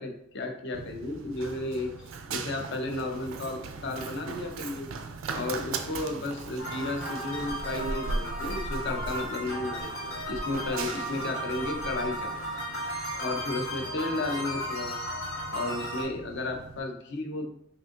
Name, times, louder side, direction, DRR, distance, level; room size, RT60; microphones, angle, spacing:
voice 1, 0.0-4.9 5.3-12.6 12.9-14.9 15.5-17.5, left 2 dB, 55° left, 3 dB, 0.7 m, -33 dB
Run, 0.7-16.8, right 4 dB, 65° right, 0.4 m, -39 dB
sound 1, 6.6-16.0, equal, 85° left, 1.5 m, -35 dB
5.3 x 2.5 x 2.5 m, 0.71 s
head